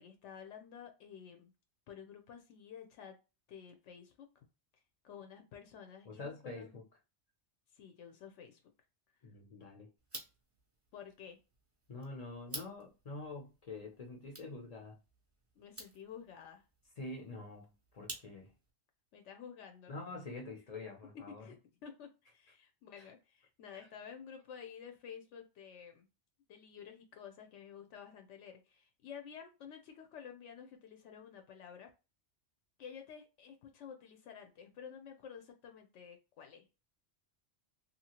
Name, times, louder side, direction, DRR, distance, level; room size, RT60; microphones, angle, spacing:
voice 1, 0.0-1.5 1.9-3.1 3.5-4.3 5.0-6.8 7.7-8.6 10.9-11.4 15.6-16.6 19.1-20.0 21.1-21.6 21.8-26.1 26.5-31.9 32.8-36.7, left 7 dB, 80° left, 0.9 m, -51 dB
voice 2, 6.1-6.9 9.2-9.9 11.9-15.0 17.0-18.5 19.9-21.4 23.0-23.1 23.7-23.9, left 2 dB, 45° left, 0.5 m, -46 dB
sound 1, 10.0-18.7, right 1 dB, 15° right, 0.5 m, -52 dB
2.8 x 2.3 x 2.8 m
omnidirectional pair, 1.2 m